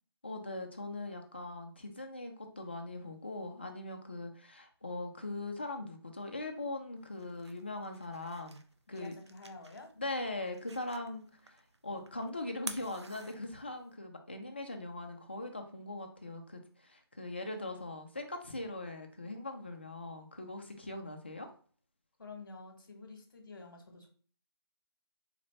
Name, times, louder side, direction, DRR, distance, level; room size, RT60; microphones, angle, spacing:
voice 1, 0.2-8.6 8.9-9.1 10.0-21.5, left 2 dB, 25° left, 4 dB, 0.4 m, -41 dB
sound 1, 7.0-13.9, right 3 dB, 80° right, 0.6 m, -51 dB
voice 2, 8.9-9.9 22.2-24.1, left 3 dB, 50° left, 4 dB, 1.0 m, -49 dB
4.1 x 2.5 x 3.1 m, 0.43 s
figure-of-eight pair, 175°, 14 cm